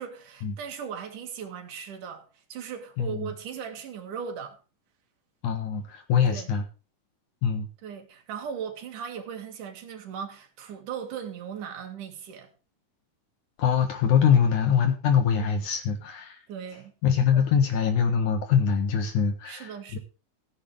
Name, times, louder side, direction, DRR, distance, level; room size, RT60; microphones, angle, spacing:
voice 1, 0.0-4.6 6.3-6.6 7.8-12.5 16.5-16.9 17.3-17.5 19.4-20.0, right 7 dB, 70° right, 3.5 m, -38 dB
voice 2, 3.0-3.3 5.4-6.6 7.4-7.7 13.6-16.4 17.0-20.0, left 7 dB, 65° left, 2.7 m, -23 dB
16.5 x 10.0 x 3.3 m
omnidirectional pair, 3.9 m